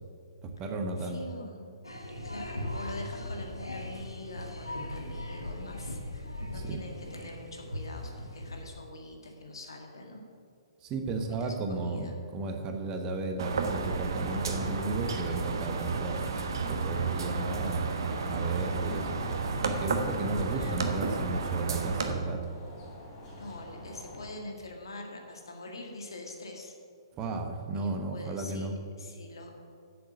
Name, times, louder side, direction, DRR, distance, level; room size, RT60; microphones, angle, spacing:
voice 1, 0.4-1.2 6.6-6.8 10.8-16.2 16.7-17.9 18.3-19.1 19.6-22.4 27.2-28.7, right 3 dB, 25° right, 5 dB, 1.0 m, -34 dB
voice 2, 1.0-1.7 2.2-10.2 11.2-12.2 20.5-21.0 23.4-26.7 27.7-29.5, left 2 dB, 65° left, 2 dB, 1.8 m, -44 dB
sound 1, 1.8-8.6, left 1 dB, 85° left, 1.2 m, -39 dB
sound 2, 13.4-22.1, right 4 dB, 60° right, 1.1 m, -32 dB
sound 3, 17.3-24.3, left 2 dB, 30° left, 3.1 m, -47 dB
8.0 x 6.9 x 7.8 m, 2.2 s
figure-of-eight pair, 120°, 2 cm